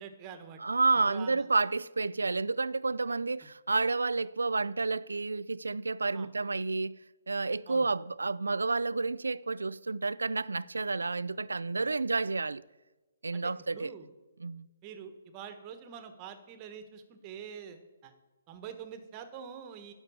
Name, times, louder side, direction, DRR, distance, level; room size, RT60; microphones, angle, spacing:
voice 1, 0.0-0.6 0.9-1.4 6.1-6.3 7.7-7.9 13.3-14.1 14.8-18.1 18.5-19.9, right 7 dB, 30° right, 1.2 m, -45 dB
voice 2, 0.6-7.0 7.3-12.6 13.2-13.9 14.4-14.7, right 3 dB, 90° right, 0.3 m, -30 dB
11.5 x 4.6 x 7.1 m
hypercardioid pair, 140°, 0 cm